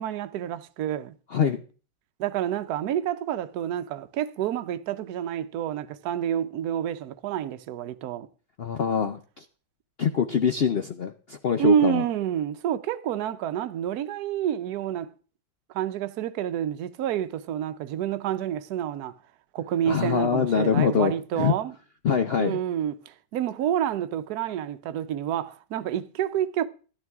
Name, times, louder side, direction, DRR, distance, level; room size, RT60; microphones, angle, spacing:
voice 1, 0.0-1.1 2.2-8.3 11.6-15.1 15.7-19.1 19.5-21.7 22.4-26.7, right 10 dB, 65° right, 1.1 m, -28 dB
voice 2, 8.6-9.4 10.0-12.0 19.9-21.5 22.0-22.6, left 7 dB, 80° left, 0.5 m, -24 dB
12.5 x 12.0 x 3.5 m
omnidirectional pair, 1.9 m